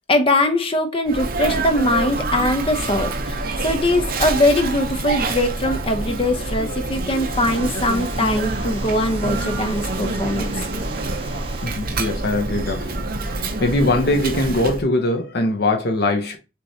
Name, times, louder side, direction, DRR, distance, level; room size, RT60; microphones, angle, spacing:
voice 1, 0.1-10.5, left 1 dB, 30° left, 0.8 m, -21 dB
Sneeze, 1.1-14.8, right 2 dB, 55° right, 0.7 m, -26 dB
sound 1, 7.0-12.0, right 2 dB, 30° right, 1.1 m, -38 dB
voice 2, 11.6-12.9 13.4-16.4, left 2 dB, 60° left, 0.8 m, -21 dB
6.2 x 3.1 x 2.8 m
head